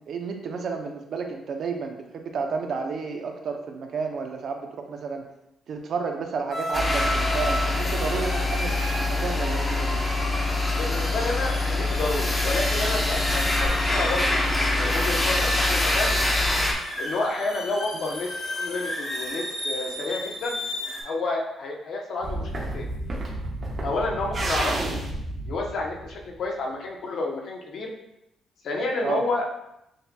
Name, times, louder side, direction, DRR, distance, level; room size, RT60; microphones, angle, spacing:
voice 1, 0.1-5.2 5.7-8.7 9.0-10.0 17.9-18.1 29.0-29.2, right 5 dB, 60° right, 3 dB, 0.6 m, -31 dB
sound 1, 6.5-21.0, equal, 45° left, 1.2 m, -33 dB
sound 2, 6.7-16.7, left 2 dB, 15° left, 0.7 m, -24 dB
voice 2, 10.8-16.1 17.0-20.6 21.0-22.9 23.8-24.9 25.5-27.9 28.6-29.5, left 2 dB, 65° left, 0 dB, 0.8 m, -30 dB
sound 3, 22.2-26.4, right 1 dB, 40° right, 1.0 m, -31 dB
6.3 x 2.7 x 2.2 m, 0.85 s
cardioid pair, 90°, 0 cm